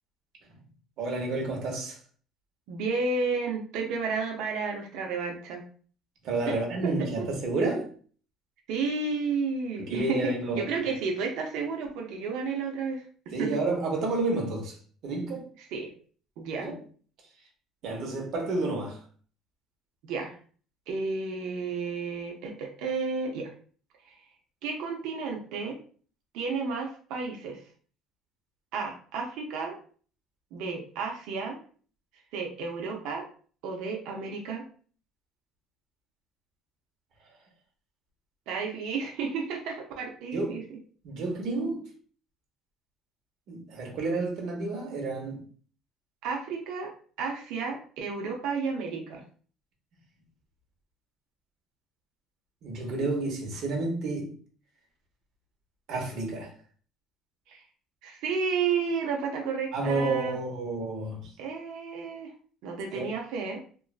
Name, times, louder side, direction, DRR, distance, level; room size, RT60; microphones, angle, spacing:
voice 1, 1.0-2.0 6.2-7.9 9.8-10.7 13.3-14.7 15.0-15.4 16.6-16.7 17.8-19.0 40.3-40.6 41.0-41.8 43.5-45.4 52.6-54.3 55.9-56.5 59.7-61.3 62.9-63.1, right 3 dB, 50° right, 0.9 m, -30 dB
voice 2, 2.7-5.6 6.5-6.6 6.8-6.9 7.2-7.3 8.7-13.0 13.4-13.5 15.7-15.9 16.4-16.7 20.0-20.4 20.9-23.5 24.6-25.8 26.3-27.6 28.7-29.8 30.5-31.6 32.3-33.3 33.6-34.6 38.5-40.6 46.2-46.9 47.2-49.2 57.5-57.6 58.0-60.3 61.4-62.3 62.6-63.6, right 4 dB, 70° right, 0.6 m, -32 dB
3.0 x 2.4 x 2.4 m
cardioid pair, 180°, 0 cm